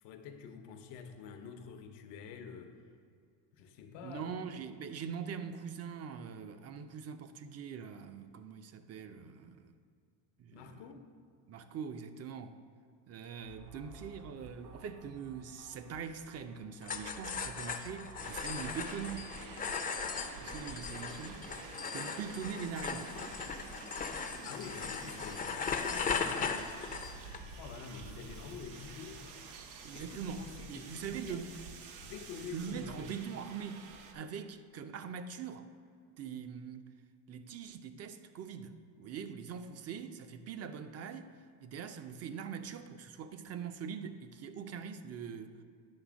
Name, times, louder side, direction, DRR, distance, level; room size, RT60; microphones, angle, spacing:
voice 1, 0.0-2.8 3.5-4.4 10.5-11.1 24.4-26.7 27.5-29.3 29.9-31.4 32.0-33.1, left 6 dB, 80° left, 0.9 m, -47 dB
voice 2, 4.0-9.7 10.4-10.9 11.5-12.6 13.1-19.3 20.4-23.2 29.8-31.5 32.4-35.7 36.2-36.9 37.3-45.6, right 6 dB, 35° right, 0.5 m, -43 dB
sound 1, 13.3-20.2, right 2 dB, 60° right, 1.7 m, -56 dB
sound 2, 16.8-27.4, left 5 dB, 20° left, 0.4 m, -38 dB
sound 3, 18.2-34.1, right 4 dB, 85° right, 0.9 m, -49 dB
9.8 x 3.4 x 6.1 m
cardioid pair, 110°, 42 cm